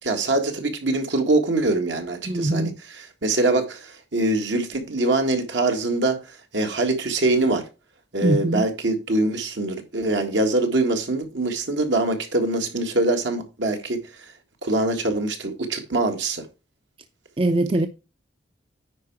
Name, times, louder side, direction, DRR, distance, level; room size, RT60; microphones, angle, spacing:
voice 1, 0.0-7.6 8.1-14.0 14.6-16.4, right 2 dB, 70° right, 1.8 m, -23 dB
voice 2, 2.3-2.7 8.2-8.6 17.4-17.9, right 2 dB, 30° right, 0.5 m, -21 dB
9.6 x 4.6 x 4.6 m
head